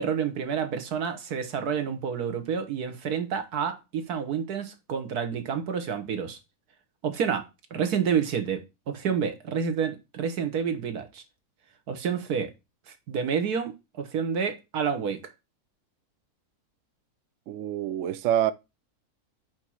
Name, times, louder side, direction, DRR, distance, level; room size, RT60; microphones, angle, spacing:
voice 1, 0.0-6.4 7.0-7.4 7.7-8.6 8.9-11.2 11.9-12.5 12.9-13.7 14.0-15.2, right 7 dB, 90° right, 1.7 m, -29 dB
voice 2, 17.5-18.5, right 11 dB, 70° right, 0.8 m, -26 dB
5.3 x 4.5 x 6.2 m
omnidirectional pair, 1.6 m